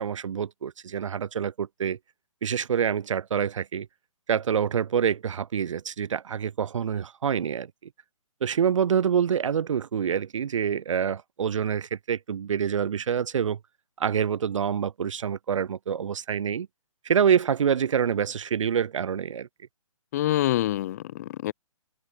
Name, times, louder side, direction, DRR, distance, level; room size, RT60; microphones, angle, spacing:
voice 1, 0.0-2.0 2.4-3.9 4.3-7.7 8.4-13.6 14.0-16.7 17.0-19.5, right 8 dB, 60° right, 0.4 m, -26 dB
voice 2, 20.1-21.5, left 14 dB, 30° left, 0.6 m, -26 dB
figure-of-eight pair, 140°, 18 cm